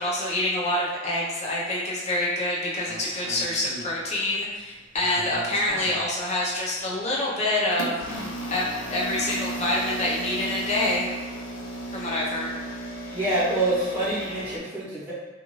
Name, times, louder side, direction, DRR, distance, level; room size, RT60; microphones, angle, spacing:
voice 1, 0.0-11.1 11.9-12.5, left 1 dB, 35° left, -5 dB, 0.7 m, -27 dB
sound 1, 2.9-4.3 4.7-6.0 6.7-6.9 7.7-14.6, right 1 dB, 80° left, 0.5 m, -35 dB
voice 2, 13.1-15.1, right 2 dB, 10° right, -11 dB, 1.0 m, -26 dB
2.5 x 2.4 x 3.1 m, 1.2 s
head